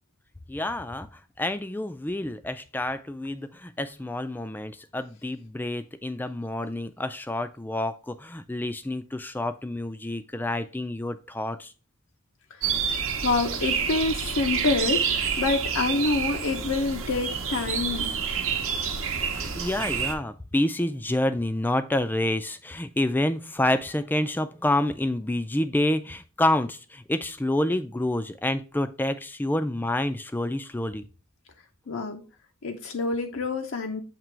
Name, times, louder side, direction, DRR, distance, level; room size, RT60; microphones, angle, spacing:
voice 1, 0.5-1.1 1.4-11.7 19.4-31.0, left 1 dB, 10° left, 11 dB, 0.3 m, -28 dB
sound 1, 12.6-20.1, right 6 dB, 70° right, 0.9 m, -28 dB
voice 2, 13.2-18.1 31.9-32.2 32.6-34.0, left 3 dB, 65° left, 5 dB, 0.6 m, -27 dB
7.4 x 3.0 x 4.5 m, 0.34 s
head